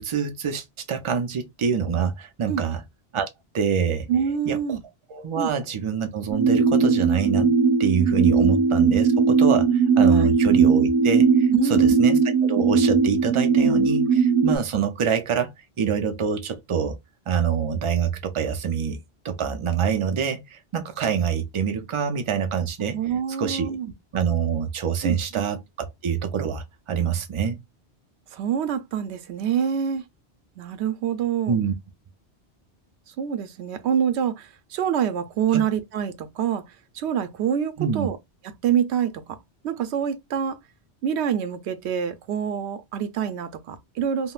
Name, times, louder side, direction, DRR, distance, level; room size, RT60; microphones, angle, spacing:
voice 1, 0.0-2.8 3.1-3.3 3.5-4.1 4.5-4.8 5.1-7.5 7.8-15.5 15.8-17.0 17.3-19.0 19.2-23.0 23.4-23.7 24.1-27.6 31.5-31.7 35.5-35.6 37.8-38.1, right 7 dB, 45° right, 0.4 m, -26 dB
voice 2, 4.1-4.8 5.3-5.5 8.4-8.5 10.1-10.3 11.5-12.0 22.9-23.9 25.0-25.4 28.3-30.0 30.6-31.6 33.2-36.7 36.9-38.2 38.6-39.4 39.6-40.6 41.0-44.3, right 8 dB, 85° right, 0.9 m, -26 dB
sound 1, 6.3-14.6, right 5 dB, 25° right, 0.7 m, -19 dB
3.7 x 2.1 x 2.4 m
omnidirectional pair, 1.1 m